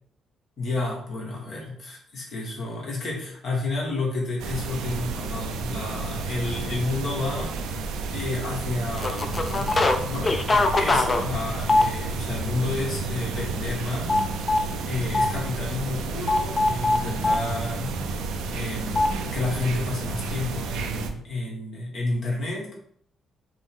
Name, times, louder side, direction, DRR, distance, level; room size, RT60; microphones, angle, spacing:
voice 1, 0.6-7.8 8.1-9.8 10.0-14.2 14.5-17.9 18.5-22.7, left 2 dB, 60° left, -2 dB, 1.1 m, -31 dB
sound 1, 4.4-21.1, right 3 dB, 90° right, 0.4 m, -31 dB
sound 2, 9.0-10.0 10.2-12.3 12.8-13.0 13.3-14.7 15.1-15.3 16.3-17.4 19.0-19.1, left 2 dB, 30° left, 0.4 m, -22 dB
5.0 x 2.1 x 3.6 m, 0.67 s
cardioid pair, 90°, 0 cm